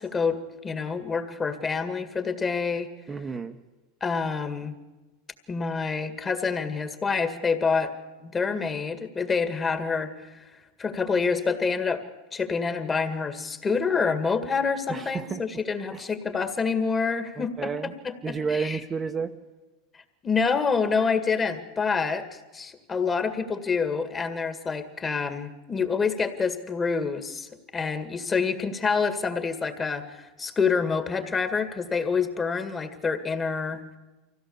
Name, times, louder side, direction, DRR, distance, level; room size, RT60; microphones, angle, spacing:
voice 1, 0.0-2.9 4.0-4.7 5.5-7.9 8.2-10.4 10.8-12.0 12.3-18.8 20.2-22.3 22.5-33.8, left 5 dB, 20° left, 9 dB, 2.0 m, -27 dB
voice 2, 3.1-3.6 14.9-15.4 15.9-16.1 17.4-17.9 18.2-19.3, right 5 dB, 20° right, 5 dB, 1.1 m, -31 dB
24.5 x 16.5 x 7.2 m, 1.2 s
hypercardioid pair, 115°, 0 cm